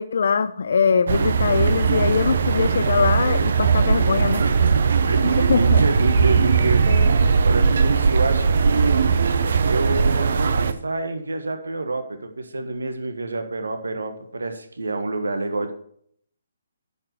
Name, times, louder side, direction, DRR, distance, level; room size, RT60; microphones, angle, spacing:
voice 1, 0.0-4.4 5.2-5.8 6.9-7.1, left 5 dB, 60° left, 12 dB, 0.8 m, -22 dB
sound 1, 1.1-10.7, right 5 dB, 60° right, 0.8 m, -19 dB
voice 2, 4.4-7.2 7.4-9.0 9.6-15.7, right 2 dB, 80° right, 7 dB, 1.5 m, -27 dB
10.5 x 5.6 x 6.7 m, 0.65 s
figure-of-eight pair, 140°, 0 cm